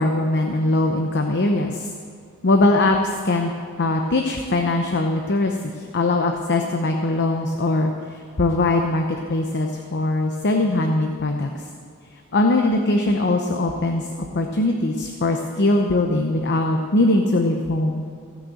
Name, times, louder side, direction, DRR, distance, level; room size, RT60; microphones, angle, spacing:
voice 1, 0.0-1.9 2.4-3.5 3.8-11.5 12.3-14.1 14.3-18.0, left 2 dB, 50° left, 3 dB, 0.8 m, -21 dB
16.0 x 6.4 x 7.6 m, 2.3 s
head